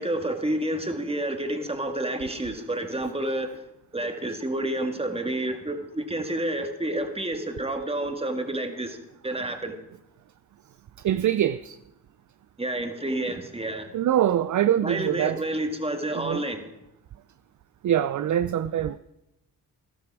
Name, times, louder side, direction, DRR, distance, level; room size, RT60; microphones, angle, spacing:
voice 1, 0.0-3.6 3.9-9.0 9.2-9.8 12.6-13.9 14.8-16.7, right 1 dB, 15° right, 1.8 m, -29 dB
voice 2, 11.0-11.8 13.9-15.4 16.1-16.4 17.8-19.0, right 11 dB, 50° right, 0.5 m, -24 dB
13.0 x 12.0 x 4.7 m
cardioid pair, 70°, 39 cm